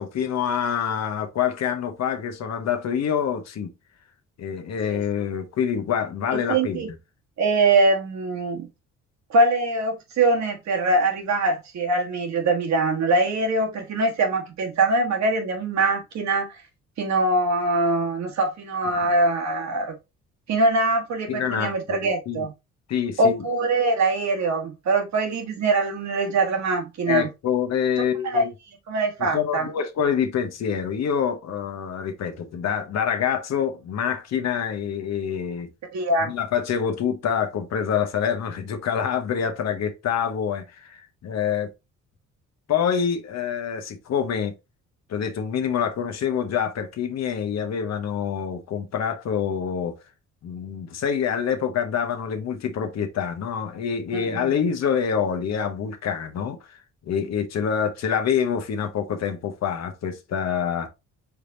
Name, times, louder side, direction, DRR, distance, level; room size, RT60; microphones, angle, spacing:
voice 1, 0.0-3.7 4.4-6.8 19.0-19.1 21.3-22.5 22.9-23.4 27.1-28.5 29.2-35.7 36.2-41.7 42.7-44.5 45.1-50.0 50.4-60.9, left 7 dB, 60° left, 1.0 m, -26 dB
voice 2, 6.3-6.9 7.4-8.7 9.3-16.6 17.0-19.9 20.5-22.5 23.2-27.3 28.2-28.4 28.9-29.7 35.9-36.3 54.1-54.5, right 2 dB, 65° right, 1.4 m, -23 dB
4.6 x 3.4 x 2.7 m
cardioid pair, 90°, 30 cm